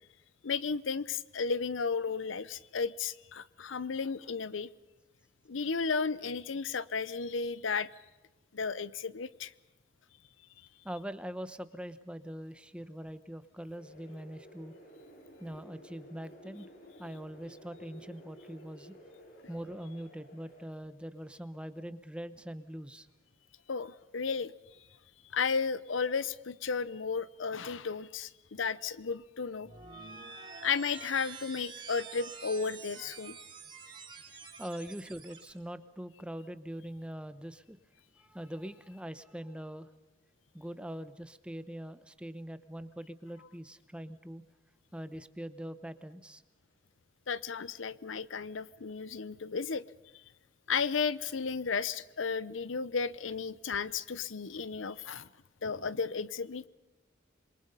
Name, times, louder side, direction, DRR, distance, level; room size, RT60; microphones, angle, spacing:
voice 1, 0.4-4.7 5.5-7.9 8.5-9.5 23.7-24.5 25.3-29.7 30.0-30.1 30.6-33.4 47.3-49.8 50.7-55.3 55.6-56.7, left 5 dB, 90° left, 19 dB, 0.7 m, -34 dB
voice 2, 10.8-14.7 15.4-16.7 17.0-19.0 19.5-23.1 34.6-37.8 38.2-39.9 40.5-44.4 44.9-46.4, equal, 5° right, 12 dB, 0.8 m, -43 dB
sound 1, 13.7-20.7, equal, 50° left, 5.5 m, -54 dB
sound 2, 29.6-35.5, right 5 dB, 25° right, 6.1 m, -47 dB
27.0 x 23.0 x 5.5 m, 1.1 s
head